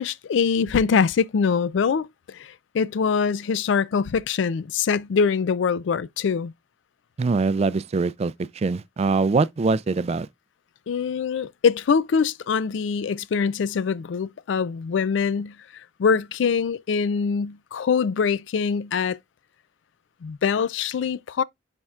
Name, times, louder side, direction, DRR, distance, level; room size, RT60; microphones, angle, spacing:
voice 1, 0.0-6.5 10.9-15.6 16.0-19.2 20.2-21.4, left 6 dB, 80° left, 0.4 m, -23 dB
voice 2, 7.2-10.3, right 4 dB, 35° right, 0.3 m, -23 dB
9.7 x 4.5 x 2.4 m
head